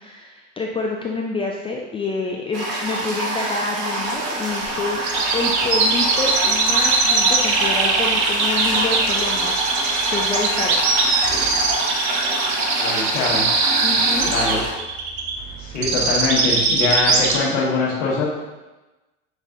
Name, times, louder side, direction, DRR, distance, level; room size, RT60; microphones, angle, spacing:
voice 1, 0.0-10.8 13.8-14.3, left 3 dB, 15° left, -1 dB, 0.3 m, -28 dB
Toilet flush, 2.5-14.7, right 1 dB, 65° right, 1.4 m, -26 dB
sound 1, 5.0-17.4, right 4 dB, 50° right, 0.8 m, -20 dB
voice 2, 12.8-13.5 14.3-14.6 15.6-18.2, left 3 dB, 75° left, -4 dB, 1.5 m, -23 dB
6.3 x 3.2 x 2.5 m, 1.1 s
hypercardioid pair, 80°, 37 cm